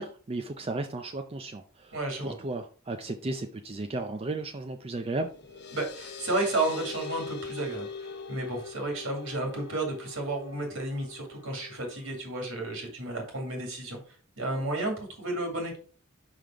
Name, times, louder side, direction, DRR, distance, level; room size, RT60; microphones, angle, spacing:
voice 1, 0.0-5.3, right 2 dB, 25° right, 6 dB, 0.5 m, -34 dB
voice 2, 1.9-2.3 5.7-14.0 14.4-15.8, right 2 dB, 65° right, 2 dB, 2.6 m, -32 dB
sound 1, 5.0-12.2, left 4 dB, 50° left, 0.8 m, -42 dB
5.7 x 5.1 x 4.6 m, 0.40 s
head